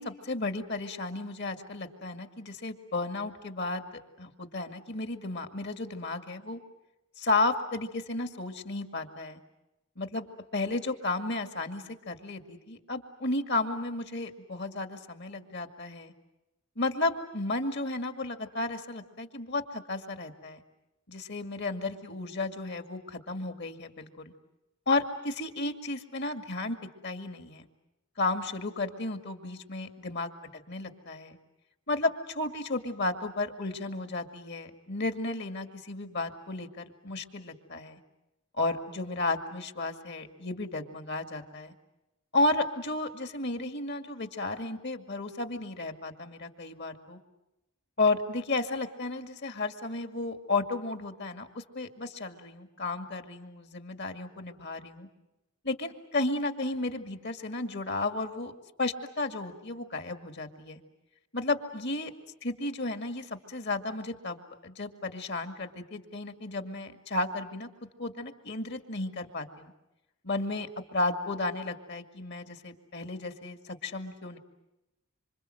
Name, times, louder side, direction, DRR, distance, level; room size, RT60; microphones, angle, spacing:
voice 1, 0.0-3.9 4.2-6.6 7.2-9.4 10.0-10.3 10.5-16.1 16.8-20.6 21.1-24.3 24.9-26.8 27.0-27.7 28.2-30.3 30.7-31.4 31.9-38.0 38.6-41.7 42.3-47.2 48.0-55.1 55.6-58.5 58.8-60.8 61.3-62.1 62.4-67.7 68.0-69.7 70.2-74.4, left 2 dB, 55° left, 8 dB, 2.1 m, -33 dB
27.0 x 26.0 x 7.8 m, 0.94 s
head